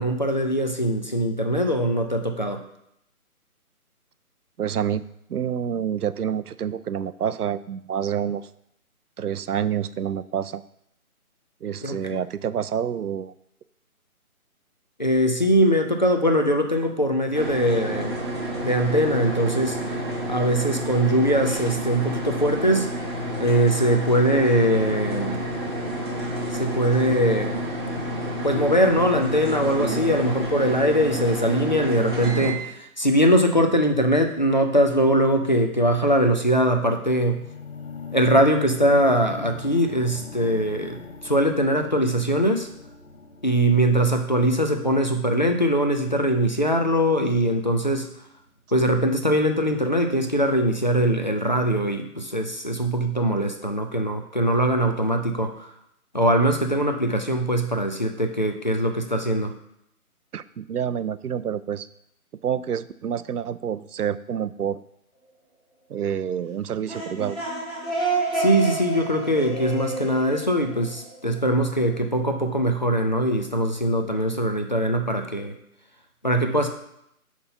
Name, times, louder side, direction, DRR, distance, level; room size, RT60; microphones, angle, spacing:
voice 1, 0.0-2.6 11.8-12.0 15.0-18.2 18.5-19.8 20.3-22.9 23.4-25.4 26.5-27.6 28.4-37.4 38.1-42.7 43.4-48.1 48.7-55.7 56.1-59.5 68.3-75.5 76.2-76.7, equal, 30° left, 5 dB, 0.4 m, -22 dB
voice 2, 4.6-5.0 5.3-8.5 9.2-10.6 11.6-13.3 60.3-61.9 62.4-64.8 65.9-67.4, right 8 dB, 85° right, 15 dB, 0.6 m, -28 dB
sound 1, 17.3-32.5, right 1 dB, 15° right, 0.9 m, -29 dB
sound 2, 37.1-47.2 47.9-48.0, left 4 dB, 65° left, 1.2 m, -42 dB
sound 3, 66.7-71.4, right 2 dB, ahead, 1.1 m, -29 dB
5.9 x 4.2 x 5.5 m, 0.76 s
figure-of-eight pair, 150°, 45 cm